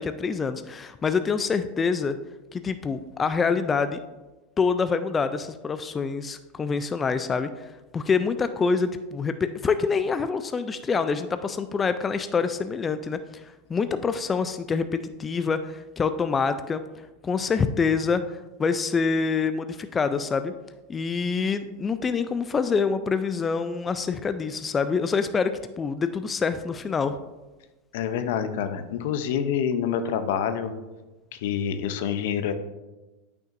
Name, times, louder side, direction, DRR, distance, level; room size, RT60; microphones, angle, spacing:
voice 1, 0.0-2.2 2.5-4.0 4.6-7.7 7.9-13.2 13.7-16.8 17.2-20.5 20.9-27.2, left 5 dB, 20° left, 10 dB, 0.3 m, -26 dB
voice 2, 27.9-30.7 31.3-32.5, left 8 dB, 70° left, 10 dB, 0.6 m, -27 dB
8.8 x 6.0 x 2.5 m, 1.1 s
supercardioid pair, 120°, 0 cm